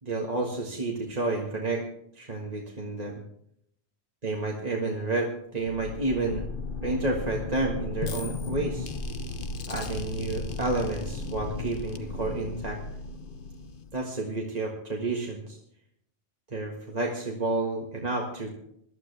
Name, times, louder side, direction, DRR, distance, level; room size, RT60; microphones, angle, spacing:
voice 1, 0.0-1.8 2.2-3.1 4.2-6.4 6.8-8.9 9.7-12.8 13.9-15.6 16.5-18.5, right 2 dB, 35° right, -1 dB, 1.8 m, -30 dB
sound 1, 5.5-14.1, left 3 dB, 50° left, 1.1 m, -35 dB
21.0 x 12.0 x 3.4 m, 0.72 s
omnidirectional pair, 1.2 m